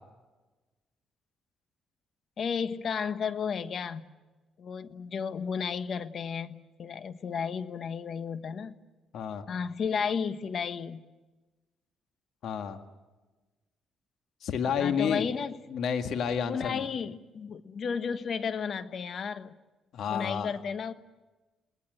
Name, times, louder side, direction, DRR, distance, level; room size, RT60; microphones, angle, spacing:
voice 1, 2.4-4.1 4.6-8.8 9.5-11.0 14.8-15.6 16.4-19.5 20.1-20.9, left 6 dB, 55° left, 12 dB, 1.3 m, -33 dB
voice 2, 9.1-9.4 12.4-12.8 14.4-15.3 15.7-16.9 19.9-20.5, left 7 dB, 75° left, 7 dB, 1.8 m, -30 dB
28.5 x 20.0 x 7.8 m, 1.2 s
cardioid pair, 90°, 0 cm